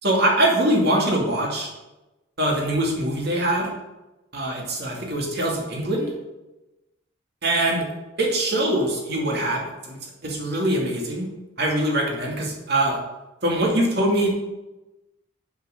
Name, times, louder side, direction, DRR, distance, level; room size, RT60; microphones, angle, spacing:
voice 1, 0.0-1.7 2.4-3.7 4.3-6.1 7.4-7.9 8.2-11.3 11.6-13.0 13.4-14.3, right 1 dB, 50° right, 0 dB, 2.5 m, -23 dB
8.0 x 7.7 x 6.6 m, 1.0 s
head